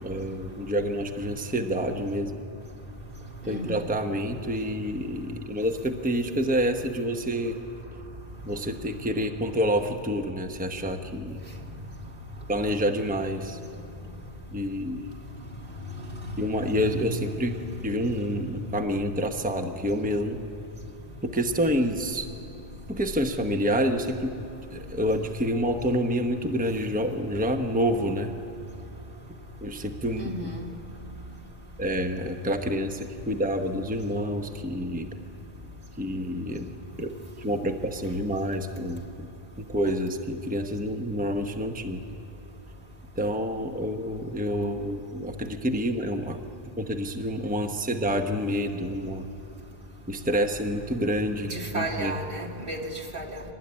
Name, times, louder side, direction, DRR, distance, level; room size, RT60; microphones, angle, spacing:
voice 1, 0.0-2.4 3.5-7.6 8.4-11.4 12.5-13.6 14.5-15.1 16.4-17.6 17.8-20.4 21.2-22.3 22.9-24.4 24.7-28.3 29.6-30.5 31.8-35.1 36.0-39.3 39.6-42.0 43.2-46.4 46.8-49.3 50.1-52.2, equal, 10° right, 4 dB, 1.0 m, -28 dB
voice 2, 3.4-3.9 16.2-17.1 17.4-17.6 18.2-18.6 30.2-30.7 51.5-53.4, right 1 dB, 60° right, 1 dB, 2.4 m, -34 dB
24.0 x 20.0 x 9.8 m, 2.7 s
omnidirectional pair, 1.0 m